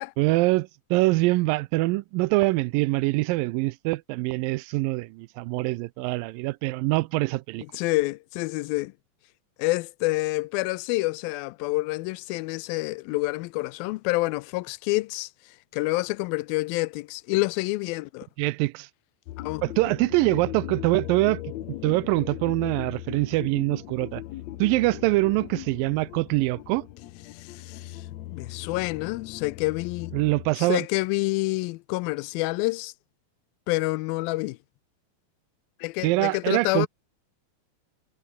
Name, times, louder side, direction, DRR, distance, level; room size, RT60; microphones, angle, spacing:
voice 1, 0.2-7.6 18.4-18.9 19.6-24.2 24.6-26.9 30.1-30.9 36.0-36.9, right 21 dB, 80° right, 2.3 m, -24 dB
voice 2, 7.7-8.9 9.6-15.3 15.7-18.3 19.4-19.6 27.3-30.1 30.6-32.9 33.7-34.6 35.8-36.9, left 22 dB, 90° left, 2.4 m, -28 dB
sound 1, 19.3-30.5, left 14 dB, 70° left, 1.8 m, -39 dB
omnidirectional pair, 4.1 m